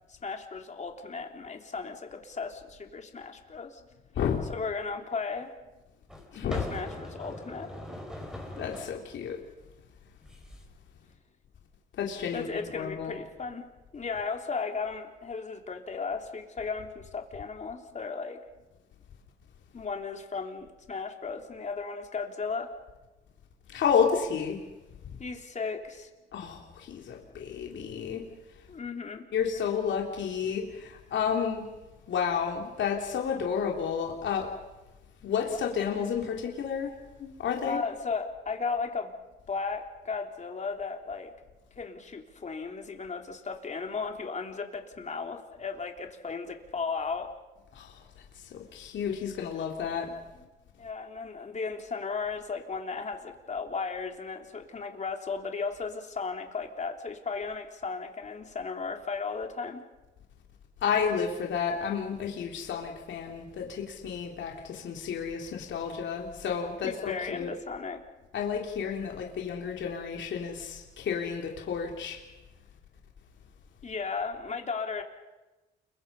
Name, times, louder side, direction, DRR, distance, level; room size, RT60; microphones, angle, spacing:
voice 1, 0.1-3.8 4.5-5.5 6.3-7.7 12.3-13.7 13.9-18.4 19.7-22.7 25.2-26.1 28.7-29.3 37.7-39.1 39.5-41.3 41.8-47.3 50.8-59.8 66.8-68.0 73.8-75.0, left 4 dB, 35° left, 3 dB, 3.5 m, -35 dB
sound 1, 5.0-5.1 6.1-8.9 10.2-10.6, left 1 dB, 5° right, 6.1 m, -41 dB
voice 2, 6.3-6.6 8.6-9.4 12.0-13.1 23.7-24.6 25.0-25.2 26.3-28.2 29.3-31.7 32.1-34.5 35.2-36.9 37.2-37.8 47.7-48.1 48.3-50.1 60.8-67.5 68.3-72.2, left 7 dB, 70° left, 0 dB, 3.4 m, -31 dB
29.5 x 23.5 x 5.6 m, 1.1 s
cardioid pair, 90°, 20 cm